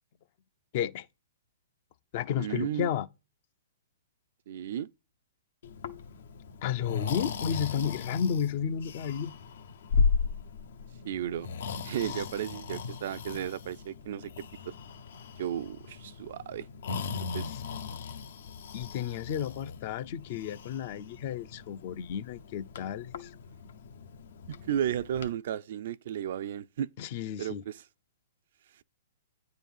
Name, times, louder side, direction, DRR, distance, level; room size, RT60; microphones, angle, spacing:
voice 1, 0.7-1.1 2.1-3.1 6.6-9.3 12.0-12.2 17.4-17.6 18.7-23.3 27.0-27.6, left 8 dB, 45° left, 0.6 m, -32 dB
voice 2, 2.4-2.9 4.5-4.9 11.0-11.5 11.8-14.7 15.4-16.7 17.1-17.5 24.5-26.9 27.4-27.8, right 10 dB, 55° right, 0.4 m, -34 dB
Breathing, 5.6-25.3, left 5 dB, 70° left, 1.0 m, -36 dB
9.2 x 3.9 x 7.2 m
hypercardioid pair, 155°, 0 cm